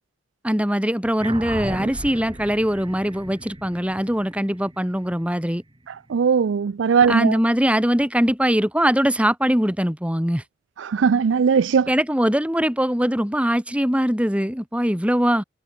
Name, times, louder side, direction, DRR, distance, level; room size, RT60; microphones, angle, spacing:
voice 1, 0.4-5.6 7.1-10.4 11.9-15.4, equal, 5° right, 2.9 m, -21 dB
sound 1, 1.2-6.0, right 1 dB, 25° right, 2.2 m, -35 dB
voice 2, 6.1-7.3 10.8-11.9, right 6 dB, 75° right, 0.4 m, -19 dB
head